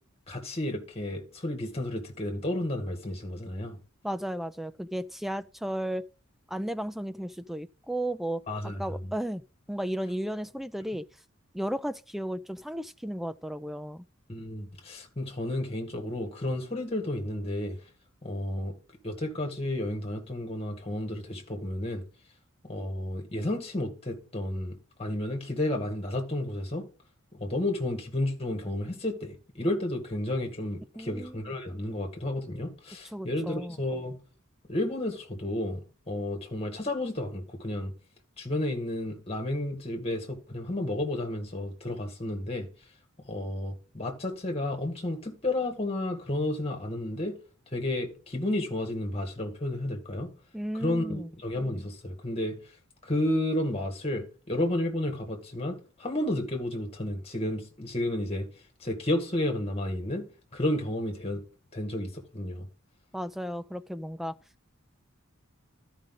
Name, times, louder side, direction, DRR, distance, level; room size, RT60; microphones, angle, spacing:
voice 1, 0.3-3.8 8.5-9.0 14.3-17.8 18.2-18.7 19.0-22.0 22.6-26.9 27.3-34.2 34.7-37.9 38.4-42.7 43.2-47.4 47.7-50.3 50.8-52.6 53.0-58.5 58.8-60.3 60.5-61.4 61.7-62.7, left 1 dB, 30° left, 2.0 m, -32 dB
voice 2, 4.0-6.1 6.5-9.4 9.7-11.1 11.5-14.0 31.0-31.4 33.1-33.8 50.5-51.3 63.1-64.4, right 1 dB, ahead, 0.3 m, -34 dB
13.0 x 5.2 x 3.8 m
head